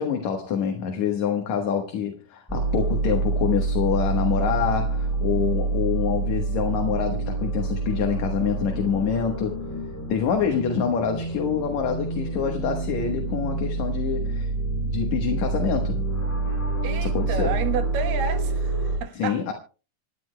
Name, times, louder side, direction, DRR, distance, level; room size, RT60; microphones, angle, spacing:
voice 1, 0.0-9.6 10.1-14.5 14.8-16.0 17.0-17.5 19.2-19.5, left 7 dB, 65° left, 2.4 m, -26 dB
sound 1, 2.5-19.0, right 3 dB, 5° left, 3.7 m, -27 dB
voice 2, 16.8-19.5, right 6 dB, 90° right, 3.0 m, -31 dB
27.5 x 11.5 x 2.2 m
omnidirectional pair, 3.9 m